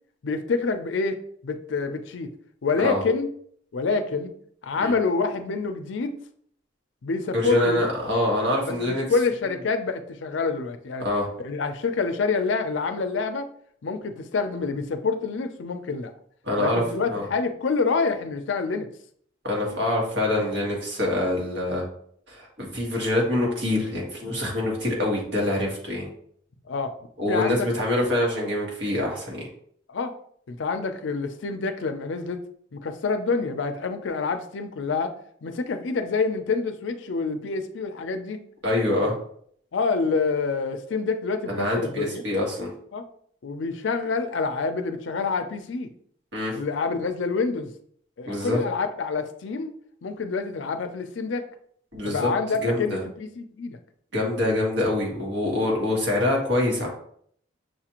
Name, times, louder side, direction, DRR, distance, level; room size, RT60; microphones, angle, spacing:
voice 1, 0.2-1.2 1.4-2.3 2.6-3.3 3.7-4.3 4.6-6.2 7.0-7.8 8.7-11.1 11.4-13.5 13.8-16.1 16.6-18.9 26.7-26.9 27.3-27.7 29.9-30.1 30.5-32.4 32.7-35.1 35.4-38.4 39.7-42.2 42.9-43.0 43.4-45.9 46.5-47.7 48.2-49.7 50.0-51.5 52.0-53.8, left 4 dB, 80° left, 8 dB, 0.5 m, -27 dB
voice 2, 7.3-9.0 11.0-11.3 16.4-16.8 17.1-17.3 19.4-21.8 22.3-26.1 27.2-29.5 38.6-39.1 41.5-42.7 46.3-46.6 48.3-48.6 51.9-52.3 52.6-53.0 54.1-56.9, left 1 dB, 65° right, -2 dB, 1.5 m, -25 dB
6.2 x 2.5 x 2.9 m, 0.62 s
head